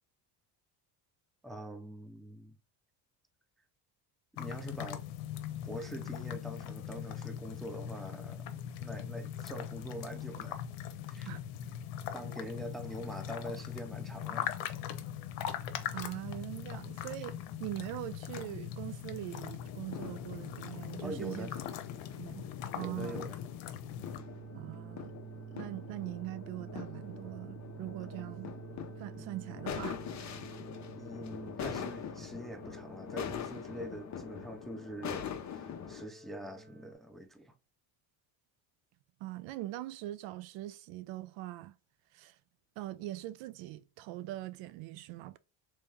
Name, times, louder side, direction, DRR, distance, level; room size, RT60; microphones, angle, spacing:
voice 1, 1.4-2.6 4.4-5.0 5.6-8.4 8.8-10.6 11.1-11.3 12.1-14.5 21.0-21.5 22.8-23.4 31.0-37.6, equal, ahead, 0.5 m, -44 dB
sound 1, 4.4-24.2, left 10 dB, 80° left, 0.9 m, -41 dB
voice 2, 15.9-21.5 22.2-22.4 22.8-23.2 24.5-25.1 25.5-28.6 29.0-30.4 39.2-41.7 42.1-42.4 42.8-45.4, right 16 dB, 70° right, 0.6 m, -42 dB
sound 2, 19.6-36.1, left 8 dB, 35° left, 0.8 m, -44 dB
sound 3, 24.0-36.9, right 7 dB, 20° right, 1.1 m, -50 dB
3.1 x 3.1 x 3.4 m
supercardioid pair, 100°, 48 cm